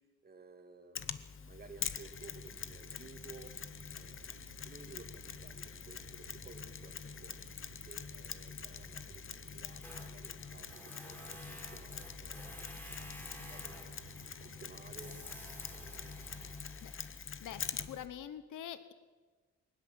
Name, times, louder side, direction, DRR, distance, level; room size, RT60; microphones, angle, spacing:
voice 1, 0.2-3.5 3.9-7.4 7.8-13.9 14.4-15.2 15.7-16.3 16.6-17.1, right 4 dB, 30° right, 5 dB, 2.5 m, -56 dB
Mechanisms, 1.0-18.1, left 7 dB, 45° left, 1.0 m, -45 dB
sound 1, 2.1-16.7, right 6 dB, 70° right, 2.0 m, -57 dB
Tools, 9.8-18.1, equal, 5° left, 3.5 m, -53 dB
voice 2, 17.4-18.9, left 10 dB, 80° left, 12 dB, 1.2 m, -45 dB
20.5 x 19.5 x 7.6 m, 1.4 s
cardioid pair, 140°, 31 cm